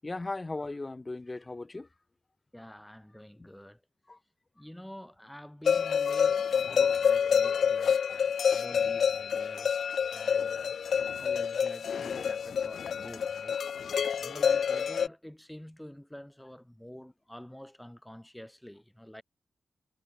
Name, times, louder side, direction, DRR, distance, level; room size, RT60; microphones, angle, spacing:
voice 1, 0.0-1.9 3.4-3.5 4.1-4.2 7.8-8.1, left 2 dB, 30° left, 0.9 m, -38 dB
voice 2, 2.5-3.8 4.5-10.8 11.1-13.7 14.2-19.2, equal, 5° left, 1.6 m, -47 dB
sound 1, 5.7-15.1, left 7 dB, 80° left, 0.5 m, -28 dB
cardioid pair, 75°, 0 cm